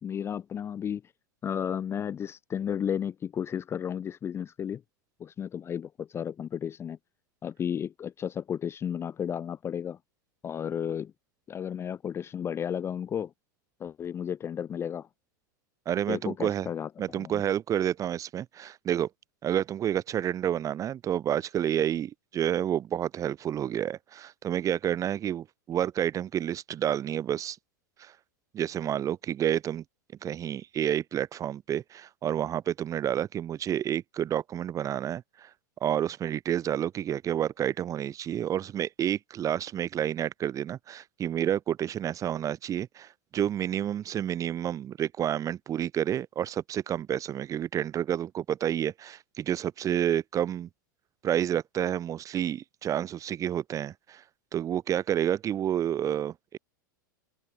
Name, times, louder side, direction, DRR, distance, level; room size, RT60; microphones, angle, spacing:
voice 1, 0.0-1.0 1.4-4.8 5.2-7.0 7.4-10.0 10.4-11.1 11.5-13.3 13.8-15.1 16.1-17.4, left 8 dB, 25° left, 0.6 m, -33 dB
voice 2, 15.9-16.7 17.0-19.1 19.4-27.6 28.0-28.1 28.5-29.8 30.2-35.5 35.8-50.7 51.2-54.2 54.5-56.6, right 10 dB, 30° right, 2.0 m, -29 dB
open air
hypercardioid pair, 100°, 11 cm